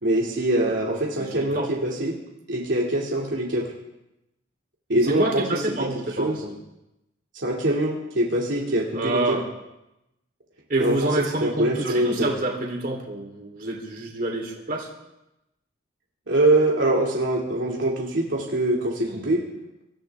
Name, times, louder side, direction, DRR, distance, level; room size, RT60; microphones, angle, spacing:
voice 1, 0.0-2.2 2.5-3.7 4.9-5.9 6.2-6.4 7.3-9.4 10.8-11.1 11.4-12.3 16.3-19.4, right 1 dB, 70° right, -3 dB, 2.4 m, -23 dB
voice 2, 1.2-1.7 5.1-6.5 8.9-9.4 10.7-14.9 19.0-19.2, right 2 dB, 45° right, 0 dB, 3.5 m, -27 dB
25.5 x 15.0 x 3.5 m, 0.91 s
head